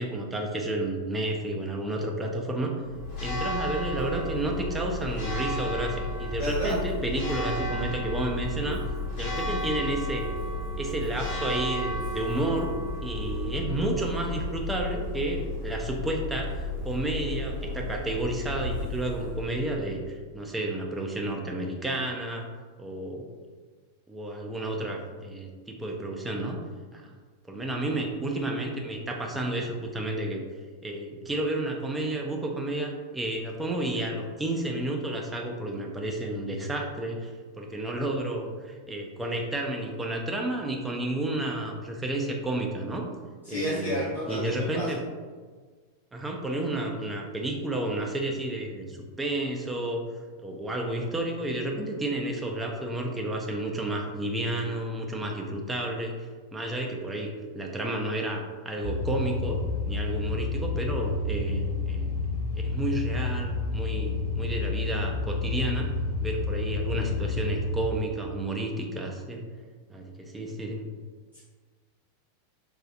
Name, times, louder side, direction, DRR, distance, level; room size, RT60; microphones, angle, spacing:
voice 1, 0.0-2.7 3.2-8.8 9.2-10.3 10.8-12.7 13.0-22.5 22.8-23.2 24.1-26.6 26.9-27.1 27.5-30.4 30.8-43.1 43.5-45.0 46.1-50.0 50.4-59.6 59.9-65.9 66.2-69.4 69.9-70.8, right 1 dB, 10° right, 0 dB, 0.4 m, -31 dB
Church bell, 2.8-20.1, left 1 dB, 45° left, 1.3 m, -33 dB
voice 2, 6.4-6.8 43.4-44.9 71.3-71.4, equal, 85° left, -13 dB, 1.0 m, -31 dB
sound 1, 58.8-67.9, left 3 dB, 70° right, 0.5 m, -30 dB
3.8 x 2.4 x 2.3 m, 1.5 s
figure-of-eight pair, 90°, 0 cm